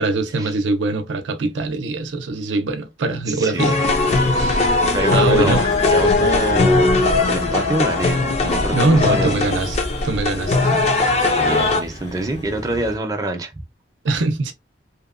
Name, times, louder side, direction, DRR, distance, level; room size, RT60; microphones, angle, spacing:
voice 1, 0.0-3.8 4.0-4.7 5.1-5.7 8.7-9.8 10.0-10.8 14.0-14.5, right 3 dB, 90° right, 0.5 m, -22 dB
voice 2, 3.3-4.5 4.9-5.6 5.9-6.9 7.2-9.3 11.1-13.5, right 1 dB, 20° right, 0.5 m, -26 dB
sound 1, 3.6-11.8, left 3 dB, 35° left, 0.4 m, -19 dB
sound 2, 4.1-13.0, equal, 70° left, 1.3 m, -34 dB
2.8 x 2.1 x 2.4 m
head